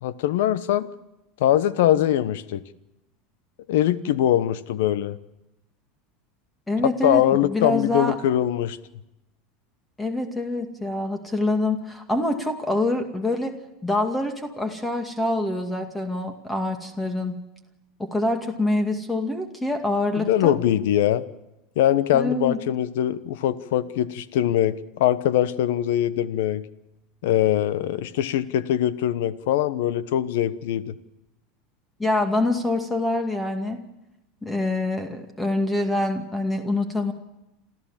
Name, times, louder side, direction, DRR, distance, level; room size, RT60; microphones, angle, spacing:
voice 1, 0.0-0.9 1.4-2.6 3.7-5.2 7.0-8.8 20.2-21.2 21.8-26.7 27.2-30.9, left 12 dB, 75° left, 16 dB, 1.0 m, -22 dB
voice 2, 6.7-8.2 10.0-13.5 13.8-17.4 18.0-20.6 22.1-22.6 32.0-33.8 34.4-37.1, left 2 dB, 10° left, 5 dB, 2.3 m, -25 dB
27.5 x 13.5 x 7.4 m, 0.95 s
hypercardioid pair, 100°, 0 cm